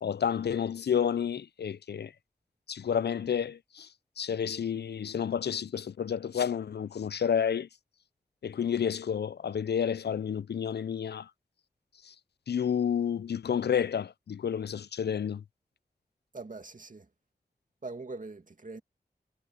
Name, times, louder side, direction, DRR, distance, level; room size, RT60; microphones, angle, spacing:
voice 1, 0.0-2.1 2.7-3.9 4.2-7.7 8.4-11.3 12.0-12.1 12.5-15.4, left 8 dB, 85° left, 0.4 m, -30 dB
voice 2, 16.3-17.0 17.8-18.8, right 3 dB, 50° right, 2.4 m, -42 dB
wide cardioid pair, 65°, 17 cm